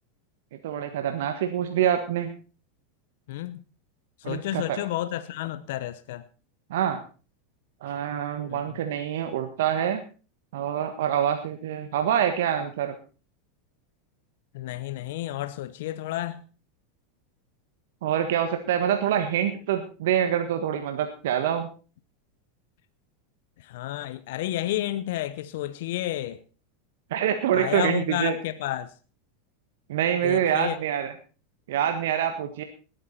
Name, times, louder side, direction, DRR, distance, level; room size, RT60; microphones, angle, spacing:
voice 1, 0.6-2.3 4.2-4.8 6.7-7.0 7.8-10.0 10.5-12.9 18.0-21.7 27.1-28.4 29.9-31.1 31.7-32.6, right 9 dB, 70° right, 1.5 m, -26 dB
voice 2, 3.3-3.6 4.2-6.2 7.9-8.0 8.5-8.6 14.5-16.4 23.6-26.4 27.5-28.9 30.2-30.8, left 14 dB, 65° left, 0.8 m, -31 dB
19.5 x 9.2 x 4.3 m
hypercardioid pair, 100°, 0 cm